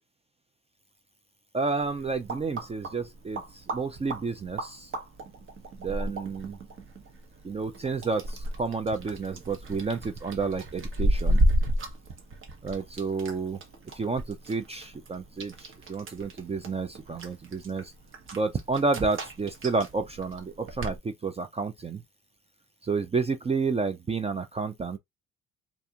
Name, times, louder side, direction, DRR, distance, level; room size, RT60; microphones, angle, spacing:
voice 1, 1.5-4.9 5.8-6.6 7.4-11.4 12.6-13.6 13.9-17.9 18.3-22.0 22.8-25.0, right 4 dB, 20° right, 0.4 m, -30 dB
sound 1, 1.8-21.0, right 1 dB, 45° right, 0.8 m, -33 dB
2.5 x 2.3 x 2.8 m
supercardioid pair, 80°, 29 cm